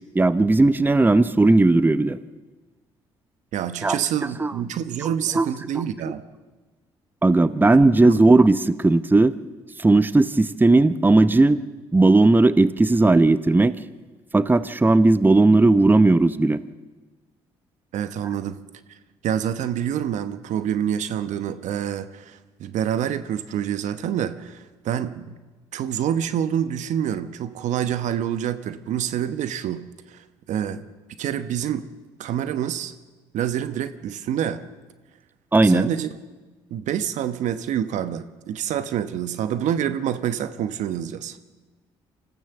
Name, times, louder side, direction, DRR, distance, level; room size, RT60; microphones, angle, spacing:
voice 1, 0.0-2.2 3.8-4.0 4.4-4.5 5.3-5.5 7.2-9.3 9.8-11.6 11.9-13.7 14.3-16.6 35.5-35.9, right 2 dB, 15° right, 15 dB, 0.7 m, -16 dB
voice 2, 3.5-6.2 8.1-8.2 17.9-18.6 19.2-25.4 25.7-30.8 31.2-31.9 32.2-32.9 33.3-34.6 35.6-36.1 36.7-41.4, right 9 dB, 70° right, 12 dB, 1.0 m, -27 dB
25.5 x 15.0 x 7.1 m, 1.3 s
hypercardioid pair, 55°, 13 cm